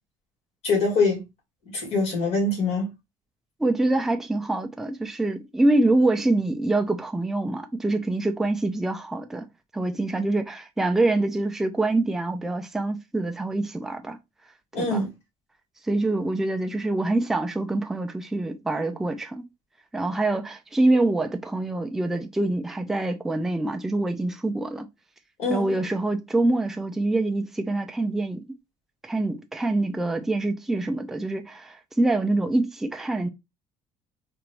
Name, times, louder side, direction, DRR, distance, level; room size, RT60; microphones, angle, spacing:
voice 1, 0.6-1.2 1.7-2.9 14.7-15.1 25.4-25.8, left 3 dB, 55° left, 2.2 m, -24 dB
voice 2, 3.6-9.5 9.7-14.2 14.8-15.0 15.9-19.5 19.9-24.9 25.5-28.4 29.0-33.3, right 2 dB, 5° right, 0.3 m, -25 dB
4.5 x 2.5 x 3.1 m
cardioid pair, 165°, 13 cm